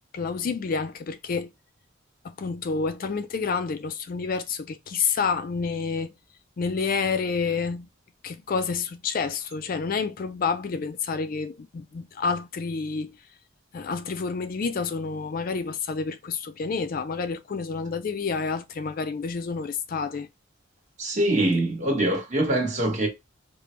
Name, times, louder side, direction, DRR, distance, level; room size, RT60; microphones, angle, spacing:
voice 1, 0.1-1.5 2.2-6.1 6.6-7.9 8.2-13.2 13.7-20.3, left 5 dB, 45° left, 0.4 m, -29 dB
voice 2, 21.0-23.1, right 1 dB, 35° right, 1.3 m, -24 dB
5.0 x 2.1 x 3.1 m
head